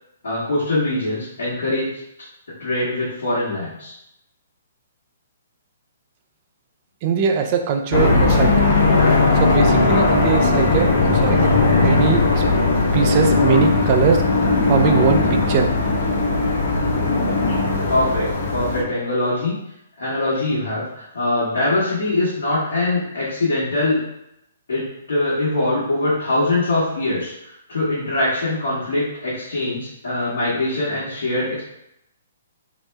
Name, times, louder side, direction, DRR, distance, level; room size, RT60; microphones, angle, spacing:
voice 1, 0.2-1.9 2.6-3.9 17.9-19.6 20.0-24.0 24.7-31.6, left 2 dB, 80° left, -9 dB, 1.1 m, -22 dB
voice 2, 7.0-8.6 9.3-11.5 11.8-12.4 12.9-14.2 14.6-15.7, right 6 dB, 40° right, 5 dB, 0.4 m, -21 dB
sound 1, 7.9-18.8, left 3 dB, 55° left, 0.6 m, -18 dB
2.9 x 2.0 x 3.3 m, 0.81 s
hypercardioid pair, 135°, 0 cm